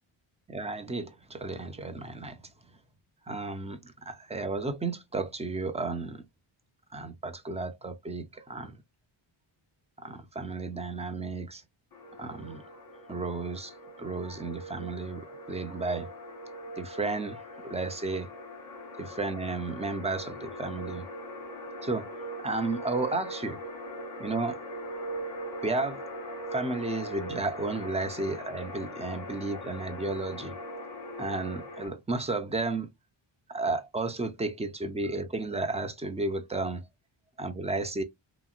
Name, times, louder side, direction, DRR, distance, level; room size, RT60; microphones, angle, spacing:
voice 1, 0.5-2.4 3.3-6.2 6.9-8.8 10.0-11.6 12.2-12.6 13.1-13.7 14.0-16.1 16.8-18.3 19.0-21.1 21.8-22.1 22.4-23.6 24.2-24.6 25.6-26.0 26.5-30.6 31.2-32.9 33.5-36.8 37.4-38.0, right 3 dB, 15° right, 0.5 m, -33 dB
sound 1, 11.9-31.9, equal, 45° left, 1.4 m, -41 dB
3.0 x 2.7 x 2.3 m
wide cardioid pair, 130°, 48 cm